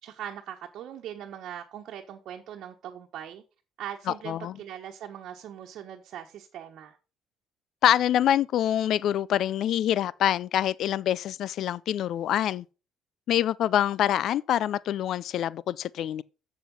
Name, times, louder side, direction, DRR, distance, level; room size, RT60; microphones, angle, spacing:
voice 1, 0.0-3.4 3.8-7.0, right 10 dB, 65° right, 1.2 m, -40 dB
voice 2, 7.8-12.6 13.3-16.2, left 11 dB, 65° left, 0.4 m, -25 dB
7.7 x 7.1 x 5.4 m
supercardioid pair, 85°, 0 cm